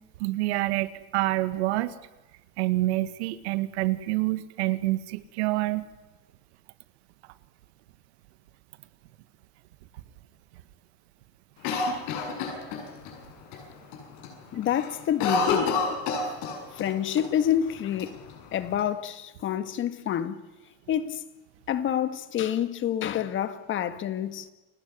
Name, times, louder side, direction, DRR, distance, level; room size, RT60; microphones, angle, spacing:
voice 1, 0.2-1.9 2.6-5.8, right 18 dB, 85° right, 1.7 m, -27 dB
Cough, 11.6-13.1 13.5-13.6 13.9-14.3 14.6-16.9 17.2-17.3 18.0-18.8, left 4 dB, 65° left, 7.5 m, -28 dB
voice 2, 14.5-15.8 16.7-18.2 18.5-20.4 20.9-21.2 21.7-24.5, left 10 dB, 40° left, 1.8 m, -28 dB
29.5 x 17.5 x 9.6 m
supercardioid pair, 130°, 32 cm